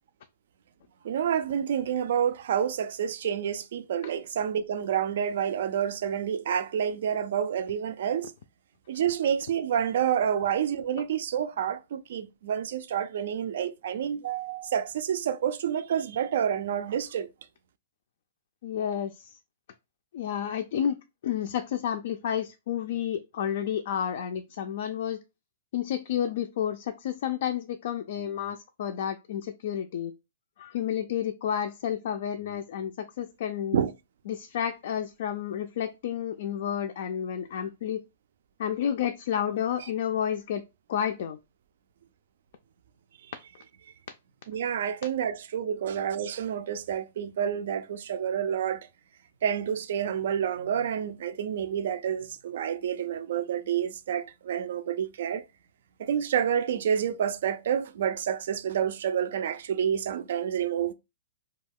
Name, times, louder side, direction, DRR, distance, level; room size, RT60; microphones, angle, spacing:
voice 1, 1.0-8.3 8.9-17.3 33.7-33.9 44.5-48.9 49.4-55.4 56.0-60.9, right 8 dB, 65° right, 0.3 m, -28 dB
voice 2, 18.6-19.4 20.1-21.0 21.2-25.2 25.7-30.1 30.6-33.8 34.3-38.0 38.6-40.6 40.9-41.4, left 9 dB, 65° left, 0.3 m, -30 dB
2.3 x 2.2 x 3.4 m
hypercardioid pair, 140°, 0 cm